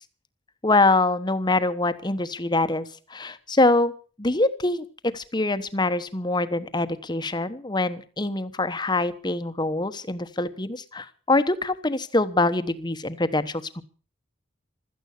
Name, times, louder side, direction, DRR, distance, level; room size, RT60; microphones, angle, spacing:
voice 1, 0.6-3.9 4.2-13.8, left 2 dB, 20° left, 11 dB, 1.1 m, -24 dB
16.0 x 13.5 x 6.6 m, 0.40 s
head